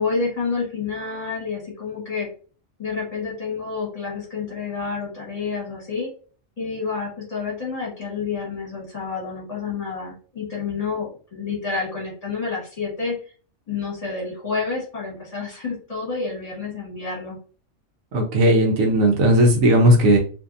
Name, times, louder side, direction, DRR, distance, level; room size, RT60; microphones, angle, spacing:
voice 1, 0.0-2.3 2.8-6.1 6.6-13.1 13.7-17.4, left 4 dB, 30° left, -3 dB, 1.1 m, -29 dB
voice 2, 18.1-20.2, right 1 dB, 85° right, 1 dB, 1.1 m, -16 dB
2.6 x 2.6 x 2.4 m, 0.40 s
omnidirectional pair, 1.4 m